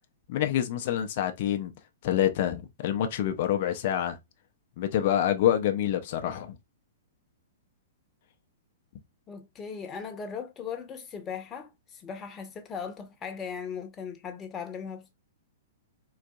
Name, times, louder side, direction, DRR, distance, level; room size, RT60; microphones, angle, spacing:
voice 1, 0.3-1.7 2.0-4.2 4.8-6.6, left 11 dB, 50° left, 0.5 m, -27 dB
voice 2, 9.3-15.1, left 6 dB, 20° left, 0.8 m, -38 dB
3.9 x 2.5 x 2.3 m
hypercardioid pair, 115°, 0 cm